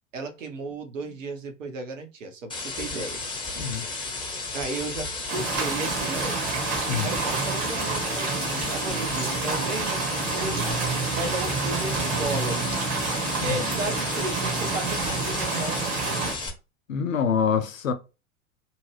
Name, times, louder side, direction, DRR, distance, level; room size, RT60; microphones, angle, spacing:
voice 1, 0.1-3.2 4.5-6.4 7.0-10.7 11.1-12.8 13.4-15.9, right 2 dB, 70° right, 1.0 m, -34 dB
sound 1, 2.5-16.5, left 3 dB, 10° left, 1.2 m, -33 dB
voice 2, 3.6-3.9 6.9-7.1 13.4-13.6 16.9-17.9, left 7 dB, 75° left, 0.7 m, -25 dB
sound 2, 5.3-16.3, right 4 dB, 40° right, 1.1 m, -28 dB
2.9 x 2.4 x 3.1 m
figure-of-eight pair, 90°, 40 cm